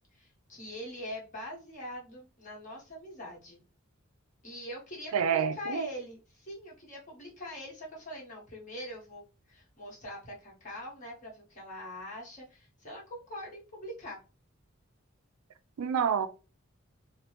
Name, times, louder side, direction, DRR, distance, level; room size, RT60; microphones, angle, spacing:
voice 1, 0.1-3.6 4.4-14.2, equal, 35° left, 1.4 m, -43 dB
voice 2, 5.1-5.9 15.8-16.3, right 7 dB, 90° right, 0.4 m, -28 dB
3.0 x 2.2 x 3.2 m
head